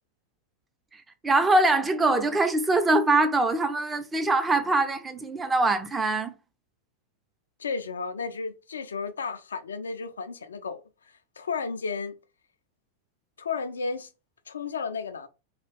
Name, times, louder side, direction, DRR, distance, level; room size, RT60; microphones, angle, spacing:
voice 1, 1.2-6.3, right 2 dB, 15° right, 0.5 m, -23 dB
voice 2, 7.6-10.8 11.4-12.1 13.4-14.1 14.5-15.3, left 5 dB, 70° left, 0.4 m, -33 dB
3.2 x 2.3 x 3.1 m
figure-of-eight pair, 90°, 0 cm